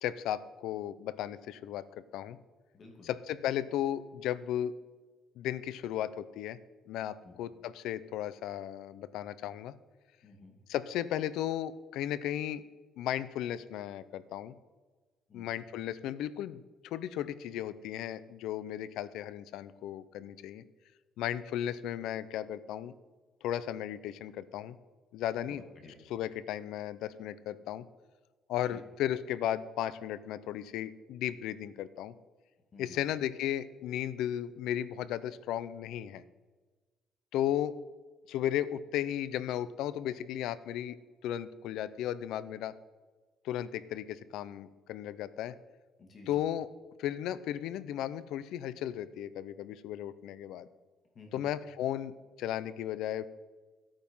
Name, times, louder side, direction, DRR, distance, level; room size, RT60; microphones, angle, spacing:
voice 1, 0.0-1.8 2.1-2.4 3.0-4.7 5.4-6.6 6.9-9.7 10.7-12.6 13.0-14.5 15.3-20.6 21.2-22.9 23.4-24.8 25.1-25.6 26.1-27.8 28.5-32.1 32.8-36.2 37.3-37.7 38.3-41.0 41.2-42.7 43.4-45.5 46.3-46.7 47.0-50.7 51.3-53.3, left 11 dB, 80° left, 16 dB, 0.6 m, -35 dB
voice 2, 2.7-3.1 7.2-7.4 10.2-10.6 15.3-15.5 25.4-26.0 28.7-28.8 32.7-33.0 46.0-46.3 51.1-51.4, left 3 dB, 35° left, 2 dB, 2.6 m, -53 dB
13.5 x 8.9 x 5.5 m, 1.3 s
cardioid pair, 155°, 0 cm